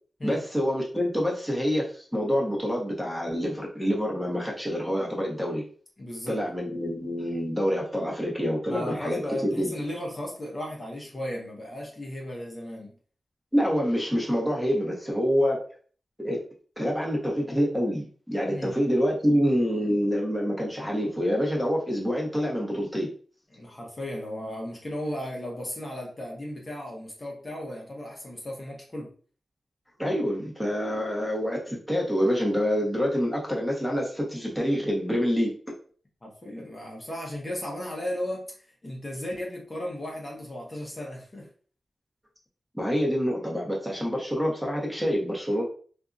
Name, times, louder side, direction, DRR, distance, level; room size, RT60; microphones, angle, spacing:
voice 1, 0.2-5.6 6.3-9.7 13.5-15.6 16.2-16.4 16.8-23.1 30.0-35.5 42.7-45.6, equal, ahead, -3 dB, 1.1 m, -26 dB
voice 2, 6.0-6.4 8.7-12.9 18.5-18.7 23.5-29.1 36.2-41.5, left 1 dB, 40° left, -2 dB, 1.0 m, -35 dB
2.6 x 2.5 x 2.4 m, 0.43 s
cardioid pair, 45°, 0 cm